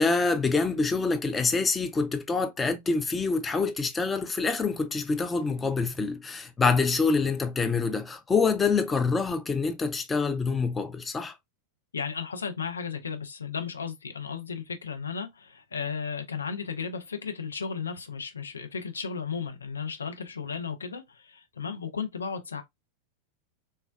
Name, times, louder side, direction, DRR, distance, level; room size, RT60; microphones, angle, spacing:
voice 1, 0.0-11.3, left 4 dB, 15° left, 0.3 m, -26 dB
voice 2, 11.9-22.6, left 6 dB, 75° left, 0.5 m, -34 dB
3.3 x 2.1 x 2.3 m
figure-of-eight pair, 90°, 0 cm